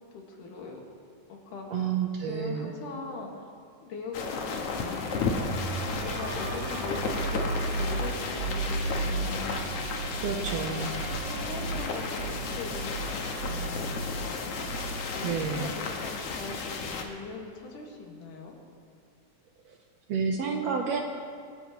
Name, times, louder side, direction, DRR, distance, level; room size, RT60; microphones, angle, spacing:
voice 1, 0.1-0.8 1.3-1.9 2.2-3.3 3.8-5.3 6.0-9.7 10.7-10.8 11.0-14.5 15.2-18.5, left 3 dB, 75° left, -1 dB, 3.4 m, -41 dB
voice 2, 1.7-2.7 10.2-10.9 15.2-15.7 20.1-21.0, right 6 dB, 70° right, 2 dB, 1.7 m, -29 dB
sound 1, 4.1-17.0, left 4 dB, 60° left, 1.9 m, -33 dB
sound 2, 5.3-16.3, right 3 dB, 85° right, 1.4 m, -35 dB
25.5 x 13.5 x 3.1 m, 2.3 s
omnidirectional pair, 3.7 m